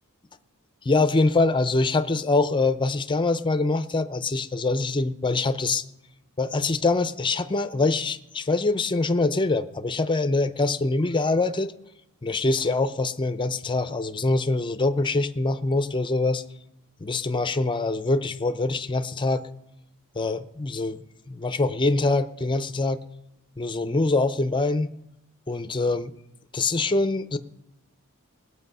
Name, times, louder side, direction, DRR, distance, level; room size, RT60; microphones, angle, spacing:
voice 1, 0.8-5.8 6.4-11.7 12.2-16.4 17.0-19.5 20.2-21.0 21.3-23.0 23.6-24.9 25.5-26.1 26.5-27.4, left 3 dB, 20° left, 11 dB, 0.5 m, -24 dB
20.0 x 8.3 x 5.5 m, 0.83 s
head